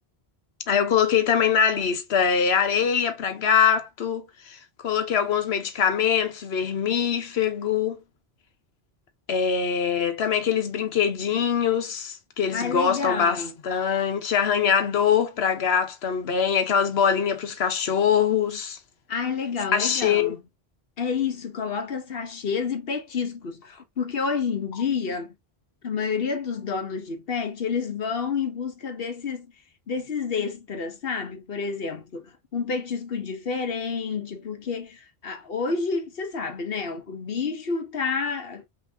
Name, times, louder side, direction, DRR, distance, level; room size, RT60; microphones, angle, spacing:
voice 1, 0.7-8.0 9.3-18.8 19.7-20.3, left 7 dB, 90° left, 1.2 m, -23 dB
voice 2, 12.5-13.5 19.1-20.4 21.0-25.3 25.8-29.5 29.9-38.7, left 5 dB, 65° left, 1.2 m, -29 dB
5.7 x 3.1 x 2.7 m
omnidirectional pair, 1.0 m